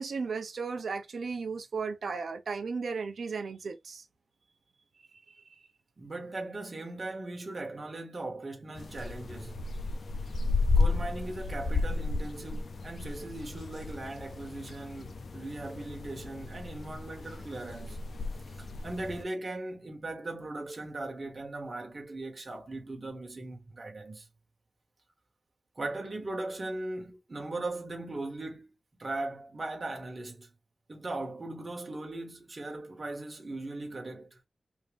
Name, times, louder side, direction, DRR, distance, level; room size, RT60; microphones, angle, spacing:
voice 1, 0.0-4.0 5.3-5.6, right 5 dB, 90° right, 0.8 m, -35 dB
voice 2, 6.0-9.7 10.7-18.0 18.5-24.3 25.7-28.7 29.0-30.5 30.9-34.4, right 2 dB, 40° right, 1.4 m, -39 dB
sound 1, 8.8-19.2, left 3 dB, 70° left, 0.5 m, -33 dB
3.7 x 2.6 x 3.4 m
wide cardioid pair, 95°, 0 cm